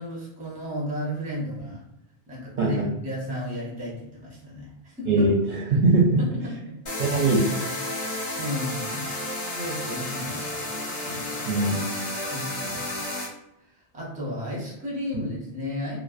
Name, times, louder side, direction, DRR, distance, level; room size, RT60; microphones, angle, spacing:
voice 1, 0.0-1.8 2.3-5.3 6.2-6.8 7.9-9.1 9.5-10.7 11.0-11.5 12.2-13.0 13.9-16.0, left 1 dB, 10° right, -4 dB, 0.5 m, -34 dB
voice 2, 2.6-2.9 5.1-6.2 7.0-7.6 11.5-11.8, right 3 dB, 60° right, -4 dB, 0.6 m, -21 dB
sound 1, 6.9-13.3, left 1 dB, 45° left, 0.8 m, -32 dB
2.5 x 2.1 x 2.3 m, 0.85 s
omnidirectional pair, 1.1 m